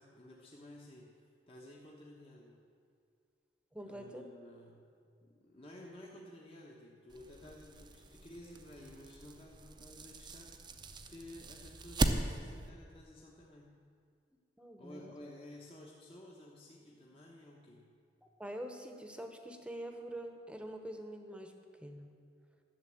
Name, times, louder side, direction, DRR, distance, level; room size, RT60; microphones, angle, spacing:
voice 1, 0.0-2.6 3.9-4.9 5.2-13.7 14.8-17.9, left 1 dB, 30° left, -3 dB, 1.2 m, -53 dB
voice 2, 3.7-4.2 14.6-15.1 18.4-21.5 21.8-22.1, right 1 dB, 5° right, 5 dB, 1.0 m, -45 dB
sound 1, 7.1-12.7, right 2 dB, 25° right, 0.7 m, -39 dB
12.0 x 7.2 x 8.6 m, 2.2 s
head